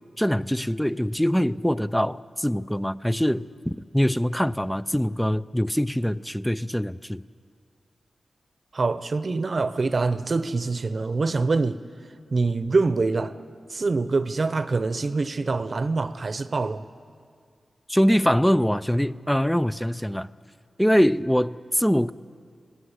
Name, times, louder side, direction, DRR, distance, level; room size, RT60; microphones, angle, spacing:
voice 1, 0.2-7.2 17.9-20.3 20.8-22.1, equal, 5° left, 0.5 m, -23 dB
voice 2, 8.7-11.8 12.3-13.3 13.7-16.8, right 3 dB, 50° right, 0.9 m, -25 dB
27.0 x 19.0 x 8.2 m
wide cardioid pair, 75°, 0 cm